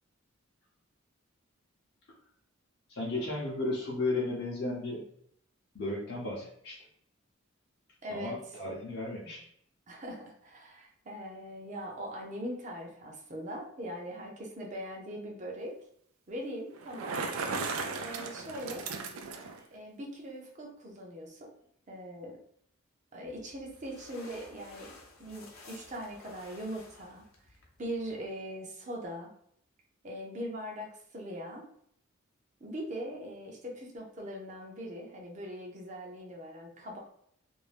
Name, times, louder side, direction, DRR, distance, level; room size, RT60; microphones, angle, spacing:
voice 1, 2.9-5.0 5.7-6.9 8.1-9.5, left 2 dB, 50° left, -5 dB, 0.7 m, -34 dB
voice 2, 8.0-8.4 9.9-15.7 16.3-17.2 17.9-18.9 19.7-21.5 21.9-22.3 23.1-24.9 25.2-27.2 27.8-29.3 30.0-31.7 32.6-37.0, equal, 35° right, 0 dB, 0.6 m, -41 dB
Bicycle, 16.8-19.6, right 4 dB, 80° right, 0.4 m, -36 dB
sound 1, 23.2-28.3, left 3 dB, 85° left, 0.7 m, -54 dB
2.6 x 2.2 x 3.2 m, 0.67 s
head